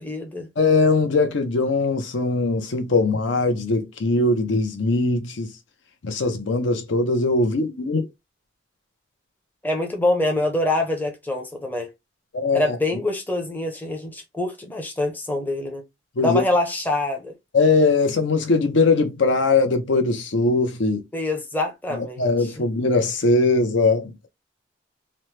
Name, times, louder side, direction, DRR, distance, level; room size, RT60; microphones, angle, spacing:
voice 1, 0.0-0.5 9.6-11.9 12.5-15.8 16.2-17.3 21.1-22.7, left 2 dB, 10° left, 0.5 m, -25 dB
voice 2, 0.6-5.5 6.0-8.1 12.3-12.8 16.2-16.4 17.5-21.0 21.9-24.1, left 3 dB, 70° left, 0.6 m, -21 dB
2.9 x 2.0 x 3.1 m
head